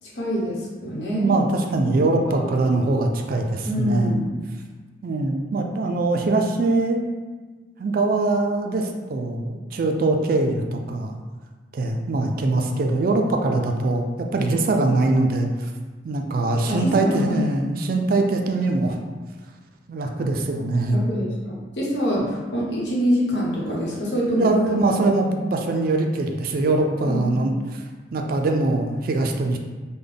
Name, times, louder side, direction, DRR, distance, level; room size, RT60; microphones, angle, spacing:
voice 1, 0.0-1.3 2.3-2.4 2.8-2.9 3.6-4.3 16.6-17.4 20.9-24.6 27.0-27.5, equal, 80° left, -4 dB, 0.9 m, -25 dB
voice 2, 1.1-4.2 5.0-7.0 7.8-11.1 11.7-15.7 16.0-19.0 19.9-21.0 24.4-27.8 28.1-29.6, right 2 dB, 55° right, 3 dB, 0.3 m, -22 dB
3.3 x 2.2 x 3.7 m, 1.4 s
head